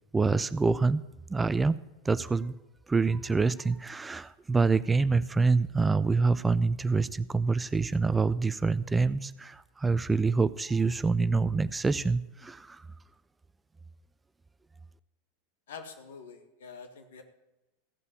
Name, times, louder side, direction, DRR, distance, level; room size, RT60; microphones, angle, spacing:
voice 1, 0.1-1.8 2.0-2.5 2.9-12.9, right 4 dB, 15° right, 15 dB, 0.4 m, -26 dB
voice 2, 15.7-17.2, left 5 dB, 75° left, 6 dB, 1.7 m, -46 dB
15.0 x 5.5 x 8.3 m, 1.0 s
hypercardioid pair, 90°, 0 cm